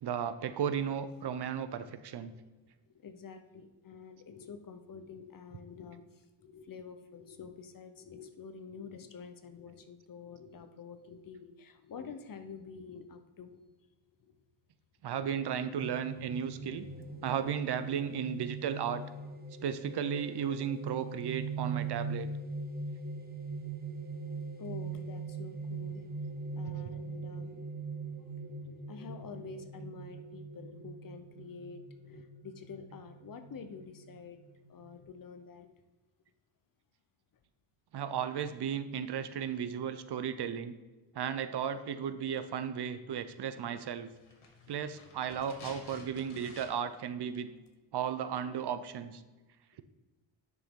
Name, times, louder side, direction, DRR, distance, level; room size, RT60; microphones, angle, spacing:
voice 1, 0.0-2.3 15.0-16.9 17.2-19.0 19.6-22.3 37.9-40.7 41.1-44.1 44.7-47.5 47.9-49.2, right 8 dB, 55° right, 12 dB, 0.6 m, -35 dB
voice 2, 2.9-13.6 16.1-17.5 17.8-18.0 24.6-26.1 26.3-34.4 34.7-35.7 44.5-44.7, left 5 dB, 45° left, 8 dB, 0.8 m, -48 dB
sound 1, 15.8-35.0, right 4 dB, 20° right, 1.0 m, -41 dB
sound 2, 44.2-47.0 47.3-47.4, left 3 dB, 85° left, 2.2 m, -52 dB
10.0 x 6.2 x 3.7 m, 1.2 s
wide cardioid pair, 135°, 47 cm